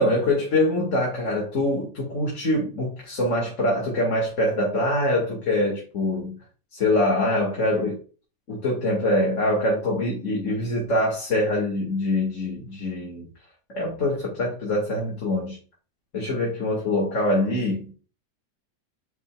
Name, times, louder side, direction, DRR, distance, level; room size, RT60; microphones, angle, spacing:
voice 1, 0.0-6.3 6.7-8.0 8.5-13.3 13.7-15.6 16.1-17.9, left 1 dB, 45° left, -2 dB, 2.4 m, -24 dB
9.3 x 5.4 x 2.4 m, 0.37 s
omnidirectional pair, 1.8 m